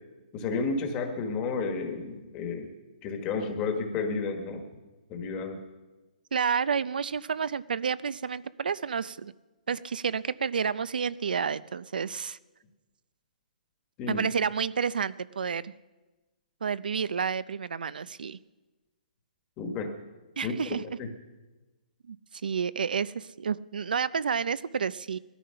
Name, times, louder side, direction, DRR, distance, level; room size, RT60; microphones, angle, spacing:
voice 1, 0.3-2.7 3.0-4.7 5.1-5.6 14.0-14.2 19.6-19.9 20.4-20.5 21.0-21.1, left 4 dB, 15° left, 5 dB, 1.4 m, -31 dB
voice 2, 6.3-9.3 9.7-12.4 14.1-15.7 16.6-18.4 20.4-20.8 22.1-25.2, right 6 dB, 85° right, 18 dB, 0.5 m, -30 dB
19.0 x 13.5 x 5.7 m, 1.2 s
hypercardioid pair, 180°, 5 cm